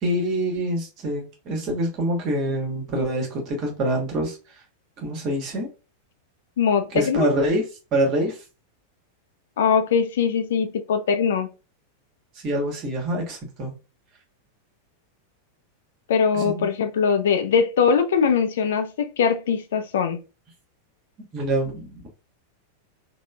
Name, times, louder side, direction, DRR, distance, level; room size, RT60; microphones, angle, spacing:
voice 1, 0.0-4.6 5.0-5.7 6.9-7.6 7.9-8.4 12.4-13.7 16.3-16.7 21.3-22.1, right 1 dB, 35° right, 1.2 m, -25 dB
voice 2, 6.6-7.3 9.6-11.5 16.1-20.2, left 6 dB, 60° left, 0.4 m, -21 dB
3.5 x 2.1 x 2.2 m
figure-of-eight pair, 90°, 0 cm